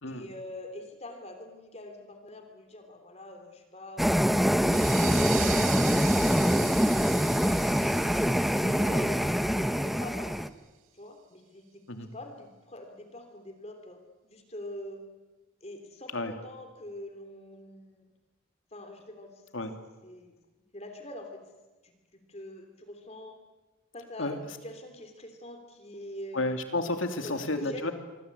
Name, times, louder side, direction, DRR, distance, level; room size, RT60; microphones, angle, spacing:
voice 1, 0.1-4.1 4.6-8.1 8.8-10.4 10.9-11.8 12.1-15.0 15.6-18.1 18.7-19.4 20.0-20.3 20.7-21.4 21.8-23.4 23.9-26.6 27.2-27.8, left 1 dB, 30° left, 5 dB, 3.1 m, -44 dB
sound 1, 4.0-10.5, equal, ahead, 0.8 m, -24 dB
sound 2, 4.6-9.9, right 10 dB, 80° right, 2.1 m, -40 dB
voice 2, 8.6-8.9 11.9-12.1 16.1-16.3 19.5-19.7 24.2-24.4 26.3-27.9, left 2 dB, 75° left, 6 dB, 3.0 m, -31 dB
25.5 x 24.5 x 8.5 m, 1.2 s
head